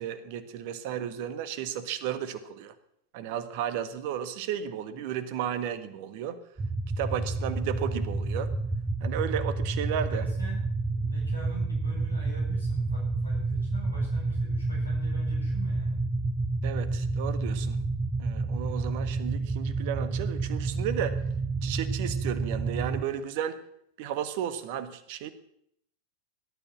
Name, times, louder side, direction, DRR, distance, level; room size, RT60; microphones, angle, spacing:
voice 1, 0.0-2.7 3.1-6.4 7.0-8.5 9.0-10.3 16.6-17.8 18.2-21.2 21.6-23.6 24.0-25.3, right 9 dB, 50° right, 12 dB, 1.6 m, -33 dB
sound 1, 6.6-23.0, right 3 dB, 15° right, 1.1 m, -29 dB
voice 2, 10.1-16.0, left 1 dB, 80° left, -2 dB, 7.7 m, -44 dB
18.0 x 12.0 x 6.1 m, 0.71 s
figure-of-eight pair, 90°, 0 cm